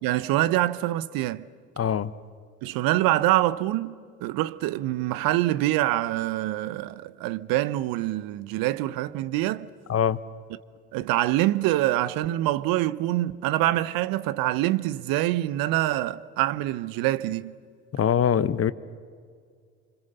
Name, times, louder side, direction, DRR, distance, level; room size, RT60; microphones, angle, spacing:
voice 1, 0.0-1.4 2.6-9.7 10.9-17.5, right 15 dB, 65° right, 1.0 m, -25 dB
voice 2, 1.8-2.1 9.9-10.2 17.9-18.7, left 8 dB, 35° left, 1.1 m, -23 dB
30.0 x 26.0 x 6.8 m
hypercardioid pair, 55°, 38 cm